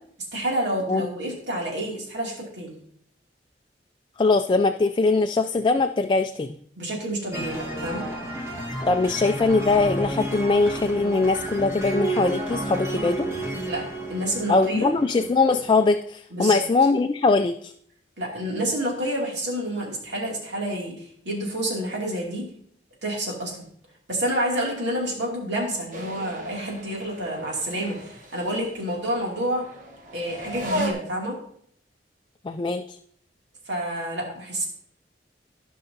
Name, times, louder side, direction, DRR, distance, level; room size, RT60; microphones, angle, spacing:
voice 1, 0.3-2.7 6.8-8.1 13.6-13.8 14.1-14.9 16.3-16.6 18.2-20.9 21.2-22.5 23.0-23.6 24.1-29.6 30.1-31.4 33.7-34.7, right 1 dB, 80° right, -2 dB, 2.7 m, -28 dB
voice 2, 4.2-6.6 8.9-13.3 14.5-17.7 32.4-33.0, left 3 dB, 25° left, 7 dB, 0.3 m, -21 dB
sound 1, 7.3-15.8, right 1 dB, 15° right, 1.5 m, -31 dB
sound 2, 25.9-30.9, equal, 45° right, 1.3 m, -35 dB
15.0 x 5.5 x 2.8 m, 0.64 s
head